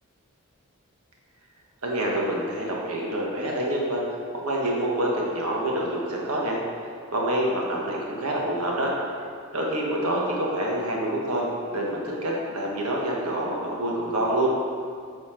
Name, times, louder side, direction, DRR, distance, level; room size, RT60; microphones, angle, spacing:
voice 1, 1.8-4.0 4.4-6.6 7.1-8.9 9.5-11.4 11.7-14.5, right 1 dB, 85° right, -3 dB, 1.4 m, -26 dB
8.8 x 4.3 x 4.4 m, 2.2 s
head